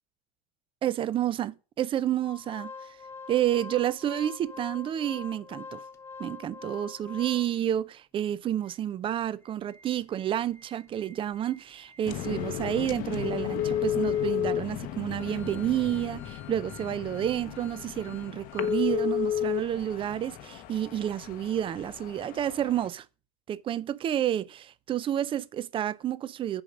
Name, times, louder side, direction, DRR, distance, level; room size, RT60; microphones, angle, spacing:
voice 1, 0.8-3.0 3.3-5.8 6.2-23.1 23.5-26.6, right 11 dB, 25° right, 0.5 m, -30 dB
Organ, 2.2-7.8 8.3-8.4 8.6-8.8 9.2-18.8 19.2-19.3, left 4 dB, 15° left, 1.0 m, -48 dB
sound 1, 12.0-22.9, left 10 dB, 50° left, 0.8 m, -33 dB
7.1 x 5.2 x 5.0 m
supercardioid pair, 120°, 19 cm